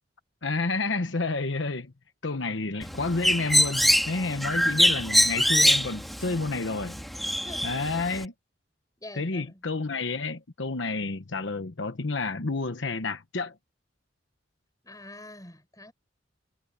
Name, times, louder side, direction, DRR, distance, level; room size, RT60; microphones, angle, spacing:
voice 1, 0.4-1.9 2.2-6.9 7.6-8.3 9.1-13.5, left 3 dB, 70° left, 1.1 m, -30 dB
Bird, 2.8-8.2, equal, ahead, 2.1 m, -24 dB
voice 2, 7.4-7.8 9.0-9.7 14.8-15.9, left 1 dB, 20° left, 6.5 m, -45 dB
head